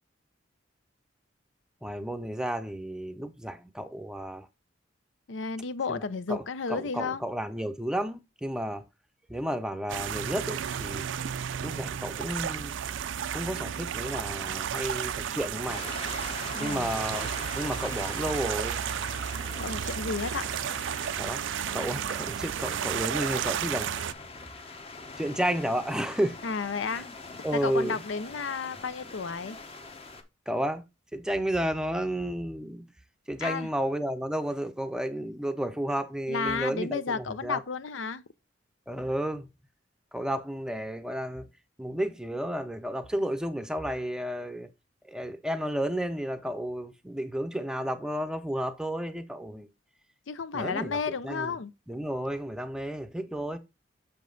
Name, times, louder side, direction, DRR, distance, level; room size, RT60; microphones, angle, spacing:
voice 1, 1.8-4.5 5.9-6.0 6.3-6.4 6.7-8.8 9.3-11.0 11.6-12.8 13.3-15.9 16.6-18.8 21.2-21.4 21.7-23.9 25.2-26.4 26.9-27.0 27.4-28.0 30.5-30.8 31.1-32.8 33.3-37.6 38.9-39.5 40.1-41.5 41.8-44.7 45.0-49.7 50.5-51.0 51.2-51.6 51.9-53.6, right 1 dB, 5° right, 0.6 m, -32 dB
voice 2, 5.3-7.2 16.5-16.9 19.6-20.5 26.4-27.1 27.5-29.6 33.4-33.7 36.3-38.2 50.3-51.7, left 5 dB, 75° left, 0.6 m, -32 dB
sound 1, 9.9-24.1, right 8 dB, 70° right, 0.4 m, -33 dB
sound 2, 15.7-30.2, left 3 dB, 30° left, 0.9 m, -44 dB
6.7 x 5.3 x 3.9 m
head